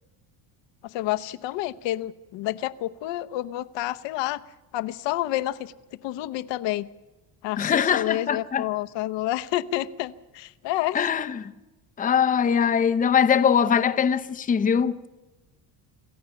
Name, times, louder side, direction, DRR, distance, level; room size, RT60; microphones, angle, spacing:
voice 1, 0.8-4.4 4.7-5.7 6.0-6.9 7.4-11.1, left 15 dB, 70° left, 0.9 m, -29 dB
voice 2, 7.6-8.6 10.9-11.5 12.0-14.9, left 7 dB, 20° left, 0.6 m, -22 dB
27.0 x 14.5 x 7.0 m
cardioid pair, 150°, 45 cm